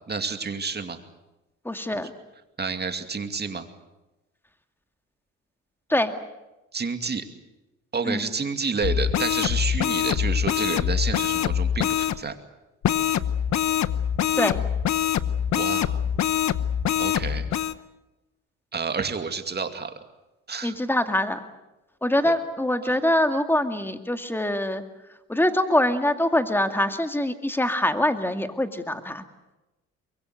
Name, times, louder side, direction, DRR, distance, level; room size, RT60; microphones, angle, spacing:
voice 1, 0.1-1.0 2.6-3.7 6.7-7.2 7.9-12.4 15.5-16.0 17.0-17.5 18.7-20.0 20.5-20.7 22.2-22.3 22.9-23.0, right 5 dB, 35° right, 7 dB, 2.5 m, -29 dB
voice 2, 1.6-2.1 5.9-6.1 8.0-8.3 14.4-14.6 20.6-21.4 22.0-24.8 25.3-29.2, left 1 dB, 5° left, 7 dB, 2.2 m, -24 dB
sound 1, 8.8-12.2 12.8-17.7, left 9 dB, 65° left, 1.0 m, -24 dB
24.0 x 22.5 x 7.8 m, 1.0 s
cardioid pair, 90°, 30 cm